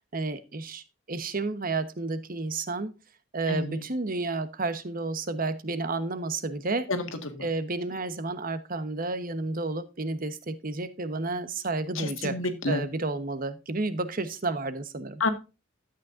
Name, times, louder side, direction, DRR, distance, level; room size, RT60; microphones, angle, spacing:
voice 1, 0.1-3.0 3.3-6.9 7.4-12.4 12.7-15.2, right 3 dB, 45° right, 1.1 m, -31 dB
voice 2, 3.5-3.8 6.9-7.4 12.0-12.9 15.2-15.3, left 3 dB, 85° left, 1.8 m, -29 dB
12.5 x 8.8 x 2.6 m
head